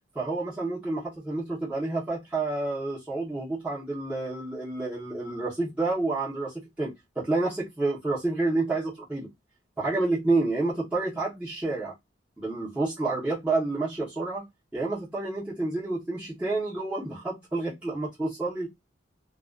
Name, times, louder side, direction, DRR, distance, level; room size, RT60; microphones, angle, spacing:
voice 1, 0.1-9.3 9.8-11.9 12.4-14.5 14.7-18.7, right 2 dB, 10° right, 0.8 m, -29 dB
2.4 x 2.2 x 2.3 m
head